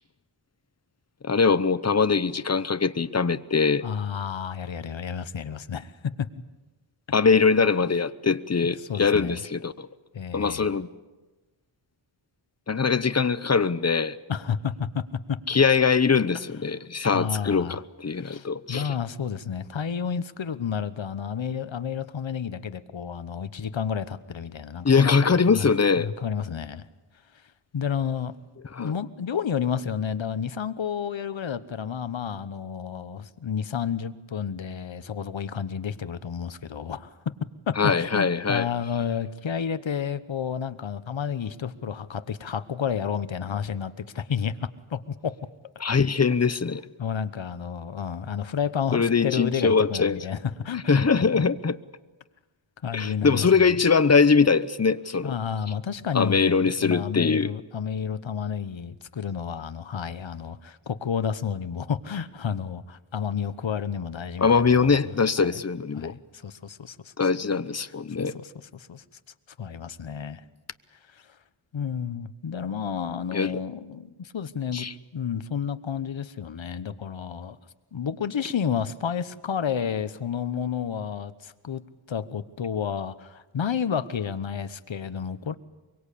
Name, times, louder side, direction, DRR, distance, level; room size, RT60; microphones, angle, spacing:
voice 1, 1.2-3.8 7.1-9.9 10.3-10.9 12.7-14.2 15.5-18.9 24.8-26.1 28.7-28.9 37.8-38.7 45.8-46.8 48.9-50.2 50.9-51.8 52.9-55.4 56.1-57.5 64.4-66.1 67.2-68.4 73.3-73.6 74.7-74.9, left 5 dB, 30° left, 14 dB, 0.9 m, -22 dB
voice 2, 3.8-5.9 6.2-6.3 8.8-9.4 10.1-10.7 14.3-15.0 15.3-15.4 17.1-17.8 18.1-25.2 25.5-25.7 26.0-26.8 27.7-28.3 28.8-37.1 37.7-45.4 47.0-51.4 52.8-53.7 55.2-65.6 65.9-67.1 68.2-69.0 69.6-70.4 71.7-74.9 75.1-77.6 77.9-81.8 82.1-85.5, left 7 dB, 65° left, 13 dB, 1.1 m, -31 dB
24.5 x 23.5 x 8.5 m, 1.2 s
wide cardioid pair, 95°, 50 cm